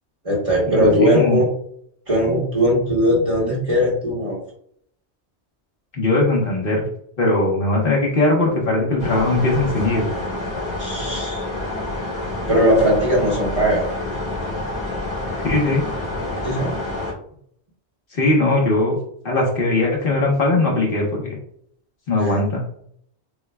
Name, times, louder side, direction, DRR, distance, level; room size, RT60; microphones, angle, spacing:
voice 1, 0.2-1.5 2.1-4.4 10.8-11.4 12.5-13.8 16.4-16.7 22.2-22.3, equal, 30° right, -3 dB, 1.1 m, -19 dB
voice 2, 0.8-1.4 5.9-6.9 7.2-10.1 15.4-15.8 18.1-19.0 19.2-21.4 22.1-22.6, left 2 dB, 55° left, -2 dB, 1.2 m, -19 dB
sound 1, 9.0-17.1, left 2 dB, 85° left, 2.1 m, -28 dB
6.7 x 2.2 x 2.3 m, 0.66 s
omnidirectional pair, 1.2 m